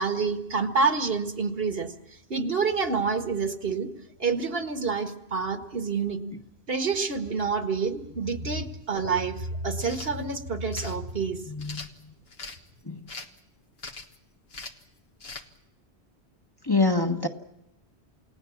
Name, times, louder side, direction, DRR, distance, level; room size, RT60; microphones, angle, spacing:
voice 1, 0.0-1.9 2.3-3.9 4.2-6.2 6.7-11.4, right 4 dB, 60° right, 7 dB, 1.9 m, -28 dB
sound 1, 9.7-10.1 10.7-11.0 11.6-12.6 13.1-13.4 13.8-14.2 14.5-14.8 15.2-15.5, left 3 dB, 65° left, 1.8 m, -40 dB
voice 2, 11.5-11.9 12.8-13.0 16.7-17.3, left 3 dB, 20° left, 3 dB, 1.5 m, -25 dB
29.0 x 18.5 x 7.2 m, 0.91 s
omnidirectional pair, 1.1 m